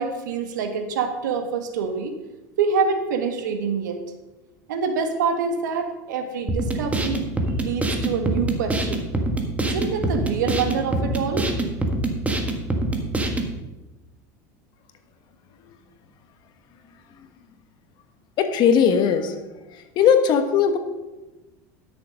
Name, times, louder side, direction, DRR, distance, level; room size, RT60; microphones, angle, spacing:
voice 1, 0.0-2.1 2.6-4.0 4.7-7.3 7.6-9.1 9.6-11.5, right 5 dB, 85° right, 6 dB, 1.5 m, -26 dB
sound 1, 6.5-13.5, right 2 dB, 15° right, 1.6 m, -25 dB
voice 2, 18.4-19.3 19.9-20.8, left 7 dB, 50° left, 8 dB, 1.4 m, -18 dB
12.0 x 6.9 x 5.2 m, 1.1 s
supercardioid pair, 105°, 10 cm